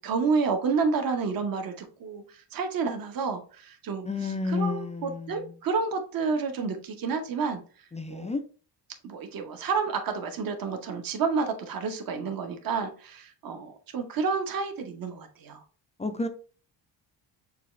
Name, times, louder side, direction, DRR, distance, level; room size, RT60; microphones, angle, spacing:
voice 1, 0.0-4.1 4.5-7.6 8.1-8.3 9.0-15.6, right 5 dB, 50° right, 5 dB, 0.9 m, -30 dB
voice 2, 4.0-5.5 7.9-8.4 16.0-16.3, left 3 dB, 15° left, 7 dB, 0.3 m, -31 dB
6.6 x 2.4 x 3.1 m, 0.39 s
cardioid pair, 125°, 44 cm